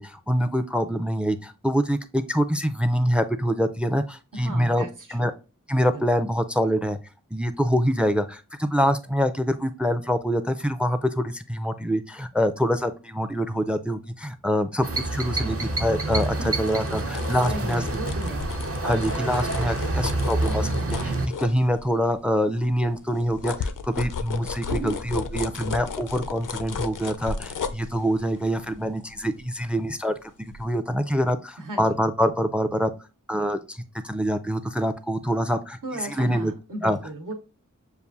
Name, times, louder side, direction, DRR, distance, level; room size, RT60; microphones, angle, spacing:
voice 1, 0.0-5.3 5.7-7.0 7.3-17.8 18.8-20.7 21.0-21.1 21.4-32.9 33.3-36.5 36.8-37.0, equal, 5° right, 12 dB, 0.4 m, -25 dB
voice 2, 4.3-4.9 5.2-5.3 5.8-6.0 16.4-16.5 17.4-18.5 24.7-25.0 31.6-31.8 35.8-37.3, right 2 dB, 75° right, 2 dB, 1.0 m, -35 dB
sound 1, 14.8-21.3, right 2 dB, 45° right, 0.6 m, -27 dB
sound 2, 16.1-22.1 22.6-30.1 30.5-30.6, left 5 dB, 80° left, 0.5 m, -35 dB
6.7 x 2.5 x 2.3 m, 0.32 s
wide cardioid pair, 50°, 32 cm